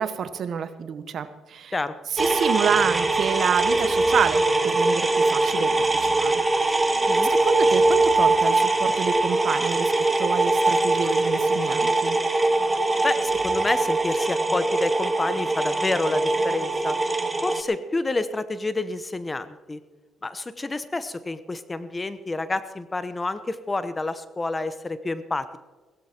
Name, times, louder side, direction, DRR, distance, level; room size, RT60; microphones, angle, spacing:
voice 1, 0.0-1.7 2.1-6.4 6.7-6.9 7.3-9.9 10.2-12.2, right 7 dB, 60° right, 12 dB, 1.1 m, -28 dB
sound 1, 2.2-17.6, right 2 dB, 20° right, 1.4 m, -22 dB
voice 2, 13.0-17.0 17.4-19.8 20.2-25.6, left 2 dB, 20° left, 13 dB, 1.0 m, -29 dB
17.0 x 15.0 x 4.5 m, 1.3 s
cardioid pair, 90°, 0 cm